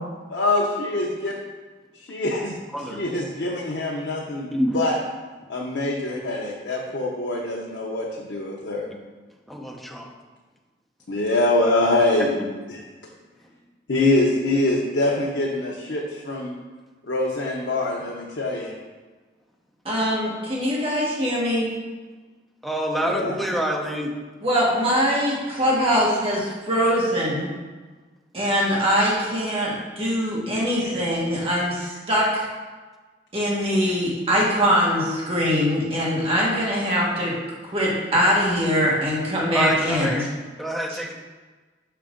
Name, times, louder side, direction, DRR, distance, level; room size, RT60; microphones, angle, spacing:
voice 1, 0.3-1.4 1.9-2.6 3.0-4.5 4.7-5.0 5.5-8.9 11.1-12.3 12.7-12.8 13.9-16.5 17.0-18.7 23.1-23.3, left 2 dB, 75° left, -2 dB, 0.8 m, -24 dB
voice 2, 9.5-10.1 12.4-12.5 22.6-24.1 39.5-40.3 40.6-41.1, equal, ahead, -1 dB, 0.7 m, -26 dB
voice 3, 19.8-21.7 24.4-27.5 28.3-32.4 33.3-37.3 37.6-40.3 40.9-41.0, equal, 30° right, -5 dB, 1.5 m, -22 dB
6.0 x 5.7 x 3.7 m, 1.3 s
head